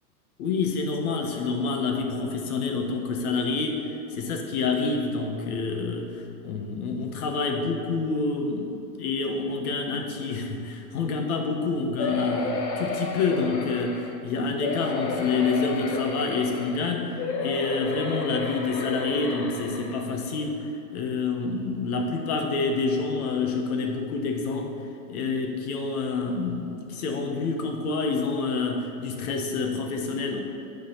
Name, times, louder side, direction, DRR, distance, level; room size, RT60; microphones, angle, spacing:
voice 1, 0.4-20.6 20.9-24.7 25.1-30.4, left 4 dB, 60° left, 3 dB, 1.3 m, -28 dB
sound 1, 12.0-14.1 14.6-16.8 17.2-20.0 20.6-20.7 21.0-21.1, left 3 dB, 85° left, 1.3 m, -32 dB
9.4 x 4.1 x 5.6 m, 2.6 s
supercardioid pair, 150°, 50 cm